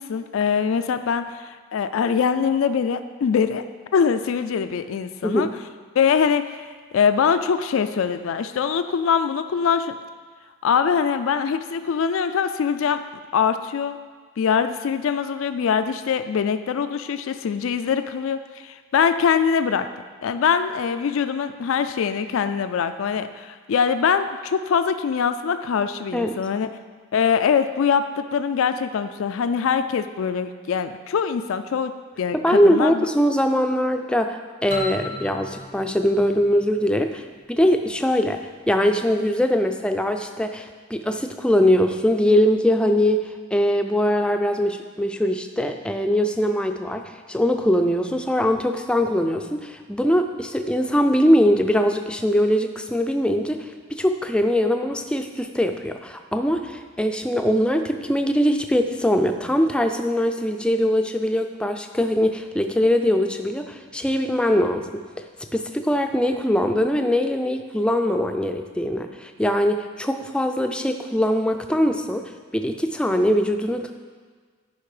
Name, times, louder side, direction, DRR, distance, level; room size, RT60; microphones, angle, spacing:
voice 1, 0.0-3.6 3.9-5.5 6.0-6.5 6.9-9.9 10.6-13.0 13.3-14.0 14.4-19.9 20.2-26.7 27.1-31.9 32.2-33.1, left 6 dB, 80° left, 10 dB, 0.4 m, -23 dB
voice 2, 32.4-65.0 65.5-72.2 72.5-73.9, equal, 5° left, 5 dB, 0.4 m, -22 dB
sound 1, 34.7-37.4, left 1 dB, 35° right, 1.4 m, -36 dB
10.5 x 5.2 x 4.9 m, 1.5 s
head